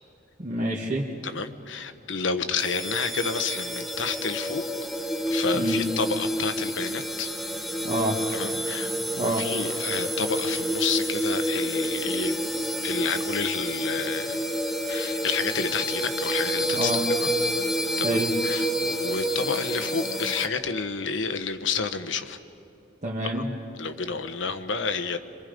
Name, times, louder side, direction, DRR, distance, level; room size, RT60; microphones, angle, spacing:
voice 1, 0.4-1.1 5.5-5.9 7.8-8.2 9.2-9.5 16.7-17.0 18.0-18.3 23.0-23.5, right 1 dB, 40° right, -4 dB, 1.8 m, -27 dB
voice 2, 1.2-4.6 5.3-7.3 8.3-12.4 12.8-14.4 14.9-16.9 17.2-17.3 18.0-18.2 18.4-22.4 23.3-23.4 23.8-25.2, left 5 dB, 80° left, 9 dB, 1.2 m, -30 dB
sound 1, 2.6-20.5, equal, ahead, 1.2 m, -28 dB
28.0 x 26.5 x 5.2 m, 2.7 s
head